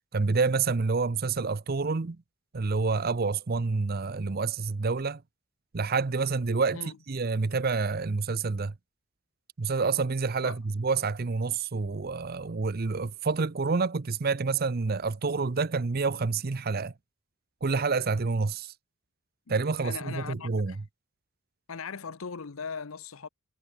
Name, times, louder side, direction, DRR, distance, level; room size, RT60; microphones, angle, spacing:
voice 1, 0.1-2.2 2.5-5.2 5.7-6.8 7.1-8.7 9.6-16.9 17.6-18.7 19.5-20.7, right 4 dB, 45° right, 0.6 m, -28 dB
voice 2, 19.5-20.8 21.7-23.3, left 5 dB, 75° left, 0.8 m, -39 dB
head